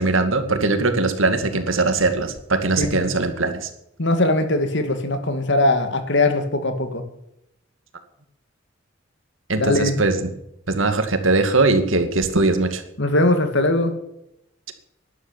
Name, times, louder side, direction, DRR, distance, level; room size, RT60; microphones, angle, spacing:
voice 1, 0.0-3.7 9.5-10.3 10.7-12.8, right 3 dB, 90° right, 7 dB, 2.3 m, -20 dB
voice 2, 2.8-3.1 4.0-7.0 9.6-10.0 13.0-13.9, left 2 dB, 65° left, 7 dB, 2.4 m, -20 dB
12.5 x 11.5 x 8.9 m, 0.82 s
head